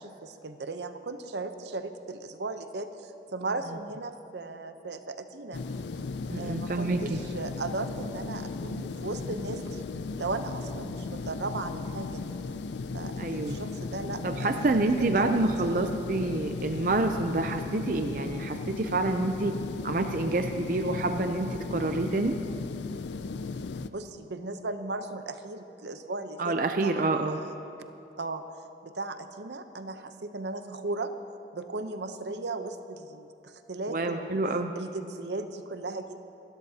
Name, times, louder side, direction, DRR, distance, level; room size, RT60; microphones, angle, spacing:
voice 1, 0.0-5.6 6.4-9.8 10.2-12.2 12.9-15.4 15.6-15.8 23.9-27.6 28.2-28.4 28.8-31.1 31.5-34.4 34.7-36.2, right 3 dB, 80° right, 9 dB, 0.8 m, -37 dB
sound 1, 5.5-23.9, left 4 dB, 80° left, 0.4 m, -36 dB
voice 2, 6.3-7.2 13.2-13.6 14.2-19.5 19.8-22.4 26.4-27.4 33.9-34.7, right 2 dB, 50° right, 6 dB, 0.5 m, -28 dB
26.5 x 12.5 x 2.8 m, 2.8 s
head